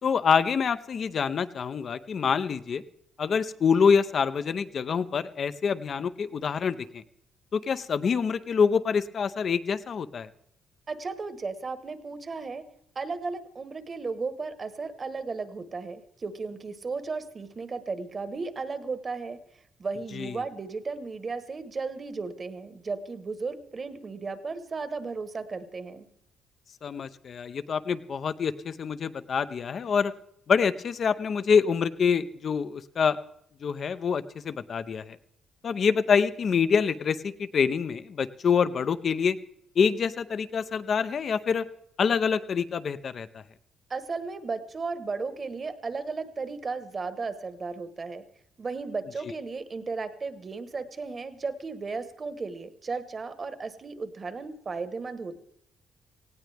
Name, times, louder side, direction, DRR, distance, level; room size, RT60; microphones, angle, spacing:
voice 1, 0.0-2.8 3.2-7.0 7.5-10.3 20.1-20.4 26.8-30.1 30.5-33.2 33.6-35.2 35.6-39.4 39.8-41.7 42.0-43.4 49.2-49.3, left 6 dB, 50° left, 13 dB, 0.7 m, -26 dB
voice 2, 10.9-12.6 12.9-19.4 19.8-26.1 43.9-48.2 48.6-55.4, right 4 dB, 35° right, 11 dB, 1.3 m, -35 dB
18.5 x 16.5 x 3.5 m, 0.72 s
cardioid pair, 90°, 0 cm